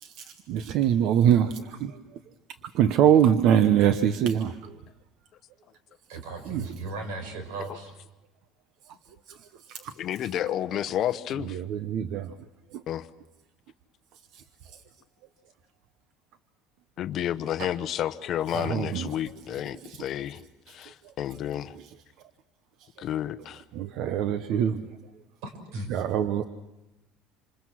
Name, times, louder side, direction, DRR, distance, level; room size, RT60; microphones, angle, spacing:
voice 1, 0.0-1.9 2.7-4.8 6.5-6.6 9.7-9.9 11.5-12.3 17.6-17.7 18.5-19.1 19.8-20.0 23.7-24.8 25.9-26.5, right 9 dB, 55° right, 11 dB, 0.9 m, -23 dB
voice 2, 6.1-8.0 25.4-26.0, right 3 dB, 80° right, 7 dB, 6.1 m, -37 dB
voice 3, 10.0-11.6 12.9-13.1 17.0-20.4 20.7-21.8 23.0-23.6, left 11 dB, 40° left, 12 dB, 0.9 m, -31 dB
27.5 x 27.0 x 6.3 m, 0.98 s
cardioid pair, 160°, 0 cm